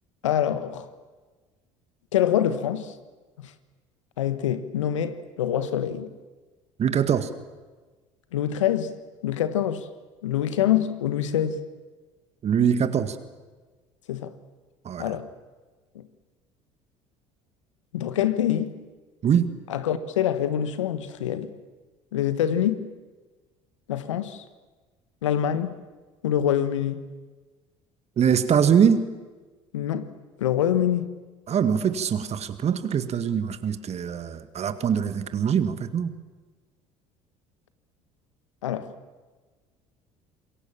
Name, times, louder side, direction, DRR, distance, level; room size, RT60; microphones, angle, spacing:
voice 1, 0.2-0.9 2.1-2.9 3.4-3.5 4.2-6.1 8.3-8.9 9.2-9.9 10.2-11.6 14.1-14.3 15.0-15.3 15.9-16.0 17.9-18.8 19.7-21.5 22.1-22.8 23.9-24.4 25.2-25.8 26.2-27.1 29.7-30.1 30.4-31.1 38.6-38.9, left 10 dB, 85° left, 1.4 m, -25 dB
voice 2, 6.8-7.3 12.4-13.2 14.8-15.1 19.2-19.5 28.2-29.1 31.5-36.1, right 7 dB, 45° right, 2.0 m, -23 dB
27.0 x 22.0 x 7.4 m
hypercardioid pair, 65°, 16 cm